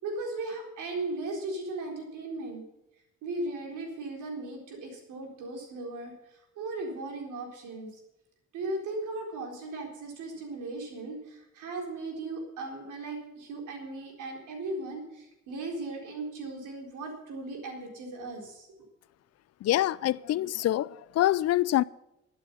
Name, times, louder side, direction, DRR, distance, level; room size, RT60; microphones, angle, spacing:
voice 1, 0.0-2.6 3.2-8.0 8.5-18.7, right 2 dB, 75° right, 4.2 m, -37 dB
voice 2, 19.6-21.8, left 14 dB, 55° left, 0.5 m, -25 dB
12.5 x 8.7 x 8.4 m
hypercardioid pair, 55°, 31 cm